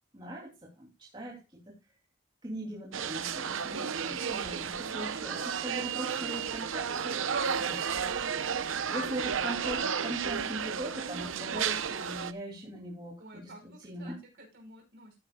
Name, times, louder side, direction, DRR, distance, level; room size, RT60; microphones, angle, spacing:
voice 1, 0.1-0.5 0.8-1.7 2.4-7.2 7.5-7.8 8.9-13.4 13.8-14.1, right 1 dB, 25° right, -3 dB, 2.9 m, -40 dB
sound 1, 2.9-12.3, right 7 dB, 85° right, 0.8 m, -33 dB
voice 2, 13.2-15.2, right 1 dB, 55° right, 2 dB, 5.1 m, -54 dB
14.0 x 9.8 x 2.3 m, 0.25 s
head